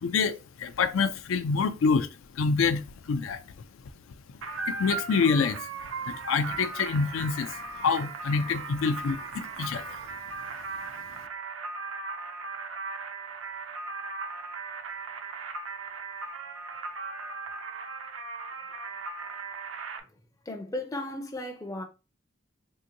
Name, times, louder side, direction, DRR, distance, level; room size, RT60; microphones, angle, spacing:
voice 1, 0.0-2.1 2.3-3.4 4.7-5.7 6.0-10.0, left 5 dB, 85° left, 0.4 m, -27 dB
sound 1, 4.4-20.0, right 4 dB, 90° right, 0.5 m, -37 dB
voice 2, 20.5-21.8, left 1 dB, 15° left, 0.4 m, -35 dB
3.4 x 2.8 x 2.6 m
head